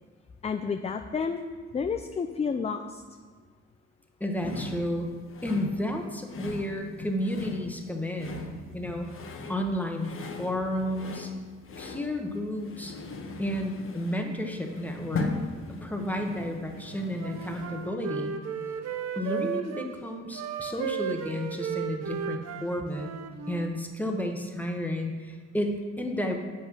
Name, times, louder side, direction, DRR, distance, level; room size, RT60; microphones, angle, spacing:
voice 1, 0.4-1.4 1.7-3.0, left 5 dB, 20° left, 7 dB, 0.4 m, -30 dB
voice 2, 4.2-5.1 5.4-8.5 8.7-9.1 9.5-11.3 11.8-12.9 13.4-15.3 15.7-18.4 19.2-23.1 23.5-26.4, left 1 dB, 5° left, 3 dB, 1.2 m, -32 dB
sound 1, 4.4-17.9, left 3 dB, 45° left, 1.1 m, -39 dB
Wind instrument woodwind instrument, 16.9-19.9 20.3-23.7, right 7 dB, 60° right, 0.8 m, -35 dB
7.9 x 5.6 x 6.1 m, 1.5 s
cardioid pair, 90°, 30 cm